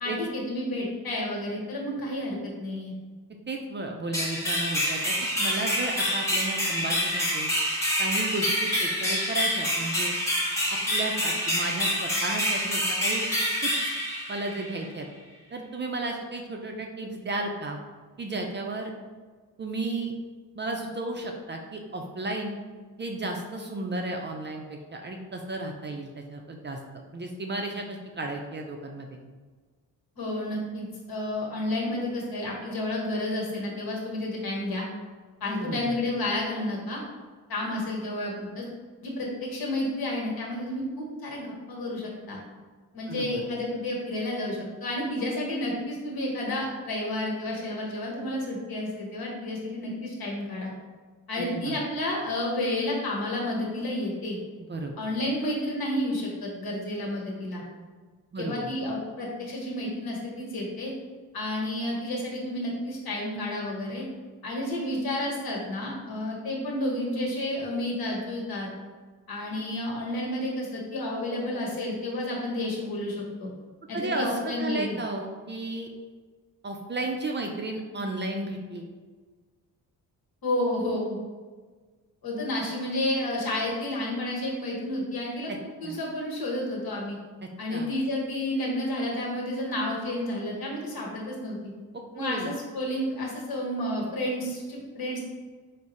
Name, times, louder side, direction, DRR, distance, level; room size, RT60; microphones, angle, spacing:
voice 1, 0.0-2.9 30.2-34.8 35.4-37.0 37.5-38.6 39.0-42.4 42.9-50.7 51.3-54.4 55.0-57.6 58.4-60.9 61.3-64.0 64.4-68.7 69.3-73.5 73.9-75.0 80.4-81.2 82.2-85.5 85.8-87.2 87.6-91.6 92.1-95.2, left 1 dB, 65° left, -2 dB, 1.1 m, -31 dB
voice 2, 3.5-7.5 8.0-10.1 10.7-13.3 13.6-13.7 14.3-15.1 15.5-17.8 18.2-18.9 19.6-20.1 20.6-22.5 23.0-26.8 27.1-29.2 35.6-36.0 43.1-43.3 51.4-51.8 54.7-54.9 58.3-58.7 73.9-75.9 76.6-78.9 85.5-85.6 85.8-86.0 87.4-87.9 91.9-92.5, right 2 dB, 30° right, 2 dB, 0.4 m, -33 dB
sound 1, 4.1-14.8, equal, 5° left, 1.1 m, -27 dB
3.6 x 2.0 x 4.0 m, 1.4 s
cardioid pair, 65°, 39 cm